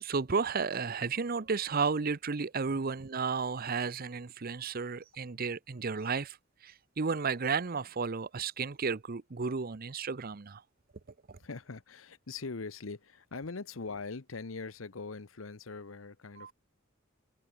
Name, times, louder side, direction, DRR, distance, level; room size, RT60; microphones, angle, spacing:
voice 1, 0.0-10.6 11.3-11.4 16.4-16.5, right 5 dB, 50° right, 0.7 m, -33 dB
voice 2, 11.4-16.5, left 4 dB, 90° left, 1.0 m, -42 dB
head